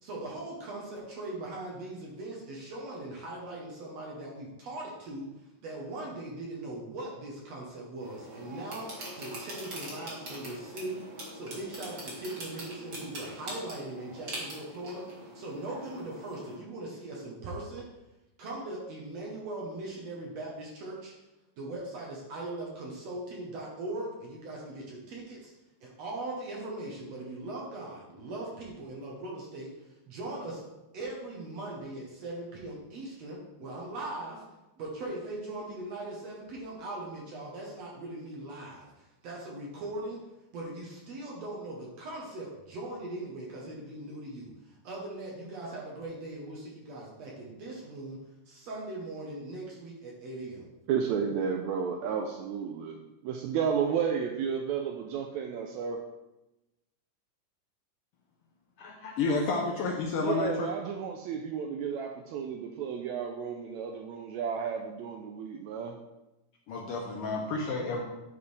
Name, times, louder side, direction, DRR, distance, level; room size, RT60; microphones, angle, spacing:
voice 1, 0.0-5.3 5.6-11.0 11.3-17.9 18.4-21.1 21.6-25.5 25.8-30.6 30.9-34.4 34.8-40.2 40.5-48.2 48.5-50.6, right 2 dB, 65° right, -3 dB, 2.1 m, -40 dB
sound 1, 8.0-16.6, right 1 dB, 40° right, 2.2 m, -43 dB
voice 2, 50.9-56.0 60.2-66.0, right 7 dB, 80° right, 3 dB, 1.7 m, -32 dB
voice 3, 58.8-60.7 66.7-68.0, left 3 dB, 80° left, 0 dB, 1.3 m, -30 dB
10.5 x 4.8 x 3.2 m, 0.99 s
omnidirectional pair, 3.5 m